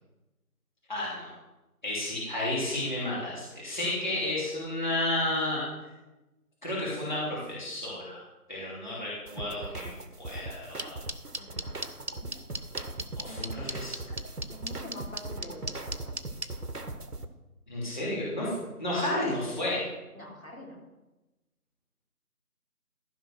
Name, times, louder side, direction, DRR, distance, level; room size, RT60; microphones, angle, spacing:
voice 1, 0.9-1.3 1.8-5.6 6.6-8.2 8.5-11.0 13.2-13.9 17.7-18.5 18.8-19.9, left 1 dB, 30° left, -7 dB, 3.0 m, -32 dB
sound 1, 9.3-17.3, right 2 dB, 80° right, 1.3 m, -40 dB
sound 2, 10.8-16.5, right 1 dB, 45° right, 0.6 m, -34 dB
voice 2, 11.4-12.4 13.3-13.6 14.5-16.1 20.1-20.8, left 1 dB, 65° left, -2 dB, 3.5 m, -46 dB
14.0 x 4.9 x 6.5 m, 1.0 s
figure-of-eight pair, 170°, 46 cm